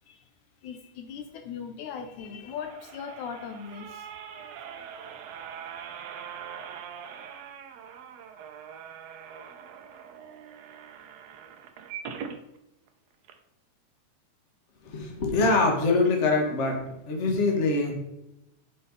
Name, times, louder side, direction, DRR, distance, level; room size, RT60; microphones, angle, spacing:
voice 1, 0.6-4.1, left 7 dB, 75° left, 6 dB, 2.0 m, -39 dB
sound 1, 2.2-12.4 12.9-13.0 13.2-13.3, right 7 dB, 70° right, 1.6 m, -42 dB
voice 2, 14.8-17.9, left 3 dB, 45° left, 1 dB, 0.9 m, -24 dB
10.0 x 5.4 x 4.0 m, 0.88 s
omnidirectional pair, 3.8 m